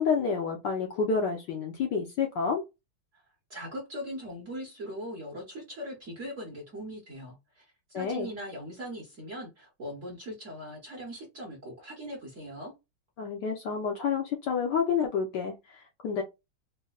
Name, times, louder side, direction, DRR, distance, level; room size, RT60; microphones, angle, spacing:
voice 1, 0.0-2.6 7.9-8.3 13.2-16.2, left 6 dB, 70° left, 1.1 m, -29 dB
voice 2, 3.5-12.7, equal, 50° right, 1.0 m, -40 dB
4.1 x 2.1 x 2.3 m
omnidirectional pair, 2.4 m